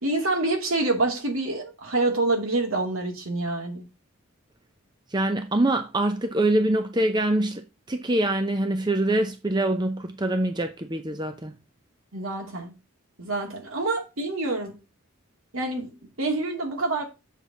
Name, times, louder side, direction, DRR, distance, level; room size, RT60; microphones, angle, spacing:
voice 1, 0.0-3.9 12.1-12.7 13.2-14.8 15.5-17.0, right 2 dB, 75° right, 2.7 m, -27 dB
voice 2, 5.1-11.6, right 1 dB, 20° right, 0.6 m, -24 dB
7.3 x 4.6 x 6.7 m
head